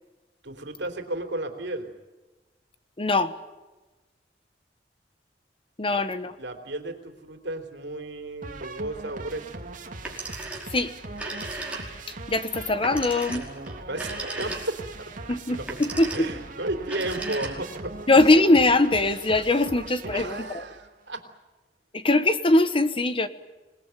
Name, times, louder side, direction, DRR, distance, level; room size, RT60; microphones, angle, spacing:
voice 1, 0.4-1.9 5.9-6.0 6.4-9.6 13.9-15.8 16.1-17.9 18.3-18.4 20.0-21.2, right 2 dB, 75° right, 6 dB, 3.4 m, -34 dB
voice 2, 3.0-3.3 5.8-6.3 10.7-10.9 12.3-13.5 15.3-16.3 18.1-20.4 21.9-23.3, left 2 dB, 30° left, 11 dB, 1.2 m, -21 dB
sound 1, 8.4-20.8, right 2 dB, 50° right, 2.4 m, -40 dB
Telephone, 9.9-10.8 11.1-12.1 12.8-14.9 15.6-16.4 16.8-17.8, right 2 dB, 10° right, 5.0 m, -36 dB
26.5 x 19.5 x 9.2 m, 1.2 s
head